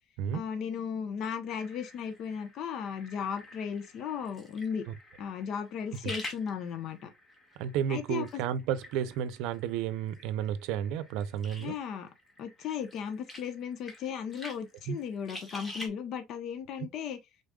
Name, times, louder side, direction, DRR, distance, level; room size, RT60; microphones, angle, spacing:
voice 1, 0.3-4.8 5.2-7.1 7.9-8.4 11.6-12.1 12.4-17.2, left 7 dB, 55° left, 0.8 m, -36 dB
sound 1, 1.5-15.9, left 1 dB, 15° left, 1.6 m, -48 dB
voice 2, 7.6-11.8 14.9-15.0, right 9 dB, 75° right, 0.6 m, -32 dB
5.1 x 3.9 x 2.3 m
cardioid pair, 140°, 0 cm